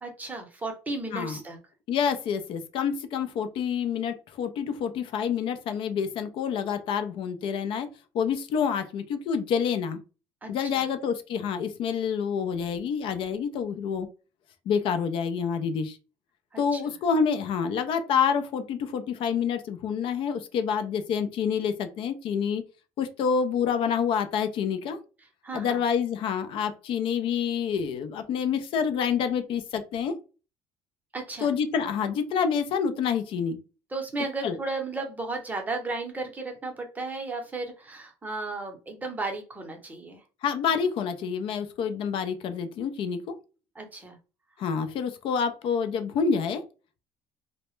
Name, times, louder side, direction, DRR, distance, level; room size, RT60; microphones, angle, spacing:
voice 1, 0.0-1.6 10.4-10.9 16.5-16.8 25.4-25.8 31.1-31.5 33.9-40.2 43.7-44.2, right 3 dB, 15° right, 3 dB, 0.7 m, -34 dB
voice 2, 1.9-7.9 8.1-10.0 10.5-14.1 14.7-16.0 16.6-22.6 23.0-25.0 25.5-30.2 31.4-33.6 34.4-34.6 40.4-43.3 44.6-46.6, left 6 dB, 60° left, 9 dB, 0.4 m, -27 dB
2.1 x 2.0 x 3.0 m, 0.33 s
cardioid pair, 120°, 10 cm